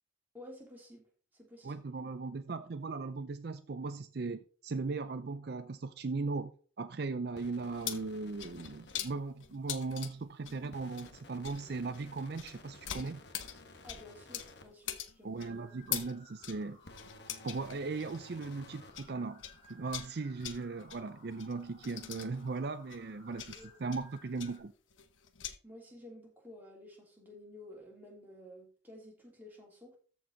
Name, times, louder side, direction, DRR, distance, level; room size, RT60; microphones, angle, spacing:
voice 1, 0.3-1.0 1.3-1.9 13.8-15.7 20.6-20.7 23.5-23.8 25.6-30.0, left 1 dB, 10° right, 2.9 m, -52 dB
voice 2, 1.6-6.5 6.8-13.2 15.2-16.8 17.4-19.4 19.7-24.7, right 3 dB, 55° right, 0.5 m, -38 dB
sound 1, 7.3-9.0 10.7-14.6 16.8-18.9, left 2 dB, 60° left, 1.2 m, -55 dB
Small metal bucket swinging, 7.6-19.1 19.4-25.6, left 10 dB, 85° left, 1.0 m, -44 dB
sound 2, 15.4-24.6, left 1 dB, 30° left, 5.1 m, -60 dB
13.5 x 4.7 x 3.9 m
head